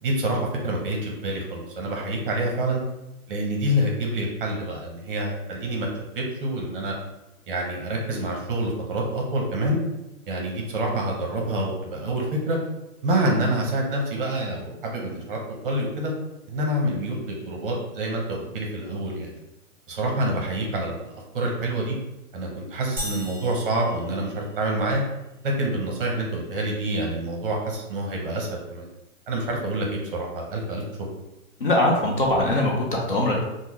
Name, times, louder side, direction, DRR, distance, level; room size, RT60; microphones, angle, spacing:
voice 1, 0.0-2.8 3.3-5.9 6.1-6.9 7.5-9.8 10.3-12.6 13.0-16.1 16.5-19.3 19.9-21.9 22.3-25.0 25.4-28.9 29.3-30.8, right 1 dB, 40° right, -1 dB, 0.7 m, -27 dB
sound 1, 23.0-24.9, equal, 5° right, 0.6 m, -37 dB
voice 2, 31.6-33.4, left 1 dB, 40° left, -2 dB, 0.4 m, -22 dB
3.5 x 2.1 x 3.0 m, 0.95 s
hypercardioid pair, 160°, 43 cm